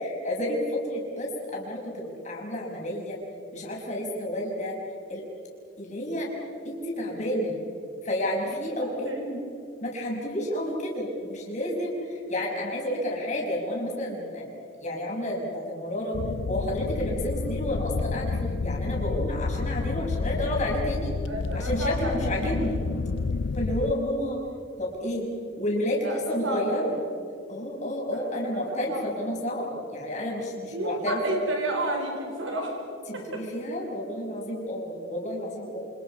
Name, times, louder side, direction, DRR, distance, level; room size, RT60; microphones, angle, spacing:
voice 1, 0.0-3.2 3.5-4.8 5.1-5.2 5.8-6.3 6.6-7.6 8.0-9.4 9.8-14.5 14.8-16.2 16.5-21.1 21.5-22.8 23.5-24.4 24.8-25.3 25.6-26.9 27.5-31.4 33.1-35.8, left 1 dB, 40° left, -2 dB, 6.1 m, -30 dB
voice 2, 9.0-9.4 21.3-22.8 26.0-26.8 28.1-29.3 30.7-32.9 33.1-33.4, right 1 dB, 85° right, 2 dB, 4.5 m, -32 dB
sound 1, 16.1-23.9, left 4 dB, 65° left, 0.5 m, -30 dB
28.5 x 27.0 x 5.6 m, 2.5 s
head